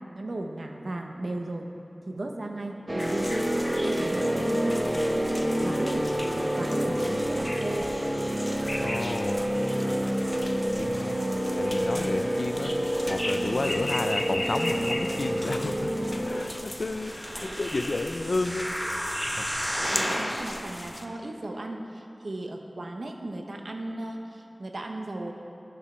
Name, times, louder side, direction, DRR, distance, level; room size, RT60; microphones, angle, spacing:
voice 1, 0.1-1.7 2.1-3.5 3.8-5.4 5.6-7.9 17.3-17.6 19.8-25.3, right 2 dB, 90° right, 3 dB, 0.7 m, -35 dB
sound 1, 2.9-16.4, equal, 35° right, 1.0 m, -28 dB
sound 2, 3.0-21.1, left 1 dB, 30° left, 0.5 m, -38 dB
voice 2, 8.8-9.4 10.8-11.1 11.6-15.9 16.3-18.7 19.4-19.5, left 2 dB, 90° left, 8 dB, 0.4 m, -32 dB
sound 3, 16.8-20.3 20.9-21.0, equal, 15° right, 2.1 m, -32 dB
11.0 x 6.1 x 4.3 m, 2.7 s
wide cardioid pair, 55°, 0 cm